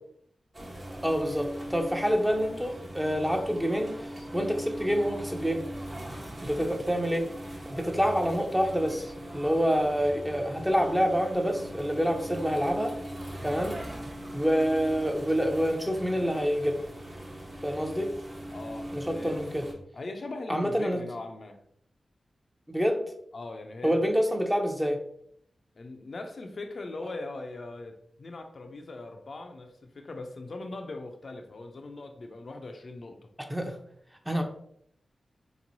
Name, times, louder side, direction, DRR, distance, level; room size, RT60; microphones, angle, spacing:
sound 1, 0.5-19.7, right 1 dB, 40° right, 1.1 m, -40 dB
voice 1, 1.0-5.6 6.4-7.3 7.7-9.1 9.3-12.9 13.4-13.8 14.3-16.8 17.6-18.1 18.9-19.7 20.5-21.0 22.7-23.0 23.8-25.0 33.5-33.8 34.3-34.4, equal, 5° right, 3 dB, 0.6 m, -27 dB
voice 2, 18.5-19.4 19.9-21.6 23.3-24.0 25.8-33.2, left 2 dB, 65° left, 5 dB, 0.5 m, -40 dB
3.8 x 3.0 x 2.6 m, 0.69 s
cardioid pair, 45°, 0 cm